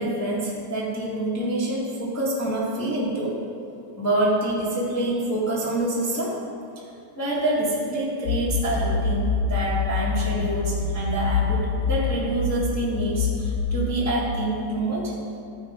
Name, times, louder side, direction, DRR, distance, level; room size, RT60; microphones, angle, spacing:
voice 1, 0.0-3.4 4.0-6.4 7.1-15.1, right 1 dB, 15° left, -6 dB, 0.6 m, -26 dB
sound 1, 8.3-13.6, left 5 dB, 80° left, 1.4 m, -26 dB
13.5 x 5.0 x 5.2 m, 2.4 s
omnidirectional pair, 3.4 m